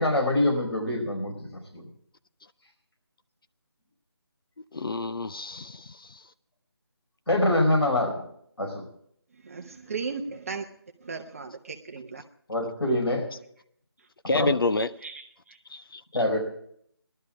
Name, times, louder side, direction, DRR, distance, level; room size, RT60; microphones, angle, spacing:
voice 1, 0.0-1.9 7.3-8.2 8.6-8.8 12.5-13.2 14.3-14.5 16.1-16.4, left 1 dB, 85° left, 5.1 m, -25 dB
voice 2, 4.7-5.8 14.3-14.9 15.7-15.8, left 2 dB, 60° left, 0.6 m, -27 dB
voice 3, 9.4-10.7 11.0-12.2 15.0-15.6, right 5 dB, 35° right, 0.8 m, -36 dB
17.0 x 12.0 x 4.9 m
figure-of-eight pair, 160°, 13 cm